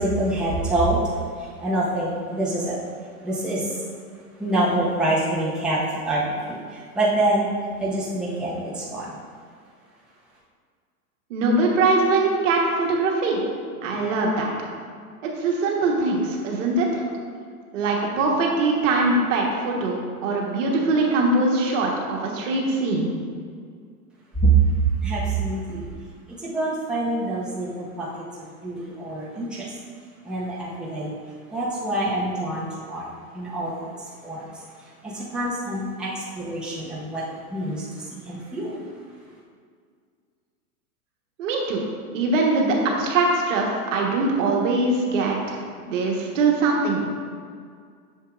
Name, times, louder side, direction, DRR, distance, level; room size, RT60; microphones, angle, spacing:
voice 1, 0.0-2.8 3.2-3.8 4.4-7.5 7.8-9.2 24.3-25.9 26.4-29.8 30.2-31.1 31.5-38.8, right 2 dB, ahead, -8 dB, 1.1 m, -26 dB
voice 2, 11.3-13.4 13.8-14.5 15.2-17.0 17.7-23.1 41.4-41.8 42.1-47.1, right 3 dB, 55° right, -1 dB, 1.4 m, -22 dB
7.2 x 6.6 x 2.5 m, 2.1 s
hypercardioid pair, 120°, 44 cm